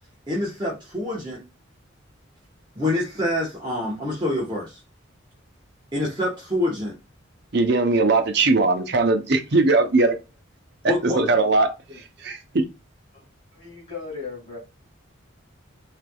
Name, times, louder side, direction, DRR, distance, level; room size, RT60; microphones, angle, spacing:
voice 1, 0.3-1.4 2.8-4.8 5.9-6.9 10.9-11.2, left 1 dB, 20° right, 1.0 m, -26 dB
voice 2, 7.5-10.2 10.8-11.7 12.2-12.6, right 3 dB, 55° right, 0.7 m, -20 dB
voice 3, 11.1-11.4 11.9-12.0 13.1-13.3 13.5-14.6, left 4 dB, 30° left, 2.1 m, -36 dB
4.0 x 3.2 x 2.2 m
head